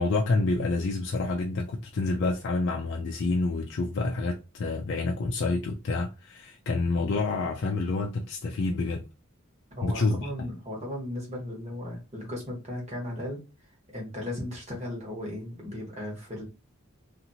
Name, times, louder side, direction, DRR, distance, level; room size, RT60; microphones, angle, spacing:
voice 1, 0.0-9.0 9.8-10.5, left 3 dB, 55° left, 0.4 m, -28 dB
voice 2, 9.7-13.4 13.9-16.4, left 1 dB, 35° right, 1.2 m, -36 dB
2.8 x 2.5 x 2.7 m
head